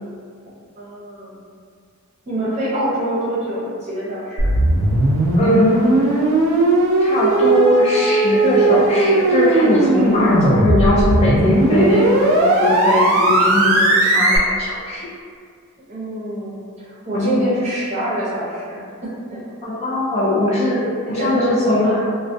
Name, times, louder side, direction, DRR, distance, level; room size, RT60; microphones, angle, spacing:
voice 1, 0.8-1.4 2.3-4.5 15.9-19.4 21.1-22.0, right 1 dB, 30° right, -9 dB, 0.7 m, -25 dB
sound 1, 4.4-14.4, right 2 dB, 75° right, 0.4 m, -17 dB
voice 2, 5.3-6.2 7.0-15.1 17.1-17.4 19.6-22.0, left 1 dB, 30° left, -6 dB, 0.3 m, -20 dB
2.2 x 2.2 x 2.6 m, 2.1 s
head